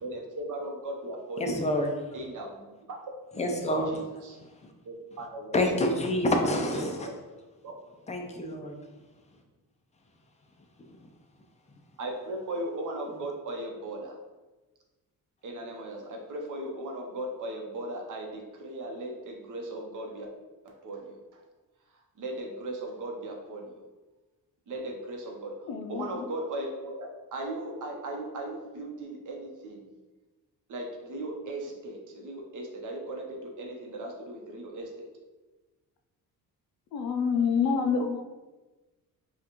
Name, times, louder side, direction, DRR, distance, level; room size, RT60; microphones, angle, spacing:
voice 1, 0.0-1.5 2.1-3.0 3.3-4.4 4.8-5.8 6.7-6.9 7.6-7.7 12.0-14.2 15.4-20.3 20.6-21.4 22.2-23.8 24.7-25.6 25.9-29.9 30.7-35.1, right 1 dB, 55° right, 1 dB, 0.9 m, -37 dB
voice 2, 1.4-2.0 3.4-3.9 5.5-7.1 8.1-8.7, left 1 dB, 20° left, 3 dB, 0.4 m, -27 dB
voice 3, 25.7-26.2 36.9-38.2, left 6 dB, 75° left, 5 dB, 0.6 m, -27 dB
5.5 x 2.4 x 3.0 m, 1.2 s
cardioid pair, 150°, 36 cm